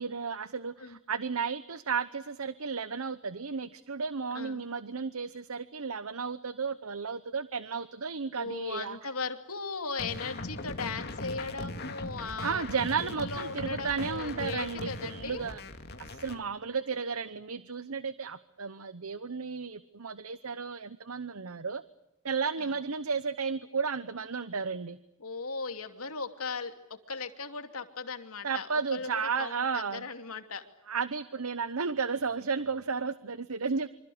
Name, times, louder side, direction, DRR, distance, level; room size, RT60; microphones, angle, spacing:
voice 1, 0.0-9.0 12.4-15.6 16.0-21.8 22.2-25.0 28.4-30.1 30.9-33.9, right 5 dB, 75° right, 15 dB, 0.9 m, -33 dB
voice 2, 8.4-12.6 13.0-15.4 22.6-22.7 25.2-26.7 27.1-29.1 29.4-30.6, left 4 dB, 75° left, 7 dB, 2.8 m, -37 dB
sound 1, 10.0-16.4, left 2 dB, 45° left, 2.6 m, -39 dB
26.5 x 26.0 x 7.9 m, 0.94 s
head